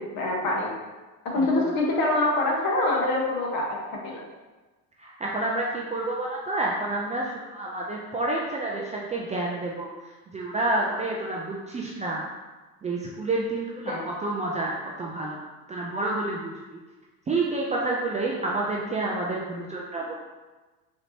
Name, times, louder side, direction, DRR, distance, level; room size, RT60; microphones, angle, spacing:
voice 1, 0.1-0.7 1.3-3.7 4.0-4.2 13.8-14.0, left 2 dB, 45° left, -2 dB, 1.3 m, -24 dB
voice 2, 5.0-9.9 10.3-12.3 12.8-15.4 15.7-16.5 17.3-20.1, right 2 dB, 15° right, -3 dB, 0.4 m, -29 dB
5.0 x 3.0 x 2.8 m, 1.2 s
hypercardioid pair, 85°, 45 cm